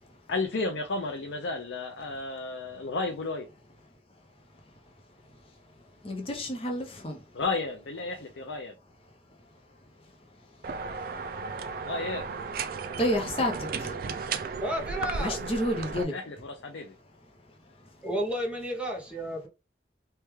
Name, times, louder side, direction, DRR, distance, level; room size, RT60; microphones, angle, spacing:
voice 1, 0.3-3.5 7.3-8.7 11.8-12.2 16.1-16.9, left 3 dB, 80° left, 0.5 m, -32 dB
voice 2, 6.0-7.2 13.0-14.0 15.2-16.1, left 1 dB, 30° left, 0.7 m, -30 dB
sound 1, 10.6-16.0, right 5 dB, 50° right, 0.3 m, -35 dB
voice 3, 14.6-15.4 18.0-19.5, equal, 5° right, 0.6 m, -32 dB
3.3 x 2.2 x 3.1 m
head